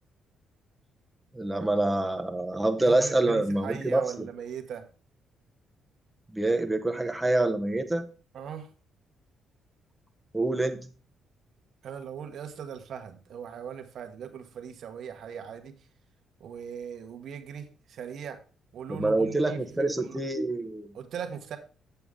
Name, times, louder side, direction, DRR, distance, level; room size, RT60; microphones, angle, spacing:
voice 1, 1.3-4.0 6.3-8.1 10.3-10.9 18.9-20.9, right 2 dB, 10° right, 4 dB, 0.9 m, -26 dB
voice 2, 2.8-4.9 8.3-8.7 11.8-15.7 16.4-18.4 18.7-20.2 20.9-21.6, right 8 dB, 65° right, 6 dB, 1.1 m, -39 dB
8.1 x 6.8 x 3.7 m, 0.36 s
cardioid pair, 90°, 0 cm